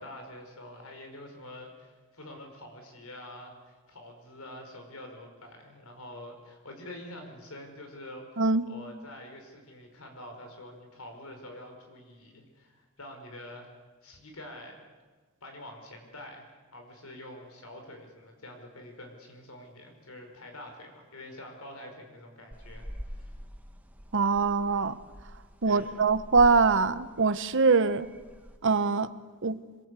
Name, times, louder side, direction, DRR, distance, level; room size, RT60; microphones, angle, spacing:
voice 1, 0.0-13.7 14.0-14.8 15.4-23.4 25.6-25.9, left 1 dB, 75° left, 4 dB, 5.3 m, -46 dB
voice 2, 8.4-8.7 24.1-24.9 25.6-28.1 28.6-29.1 29.4-29.6, right 4 dB, 60° right, 12 dB, 1.0 m, -23 dB
sound 1, 22.5-28.6, equal, 5° right, 1.6 m, -45 dB
27.5 x 22.0 x 8.3 m, 1.4 s
head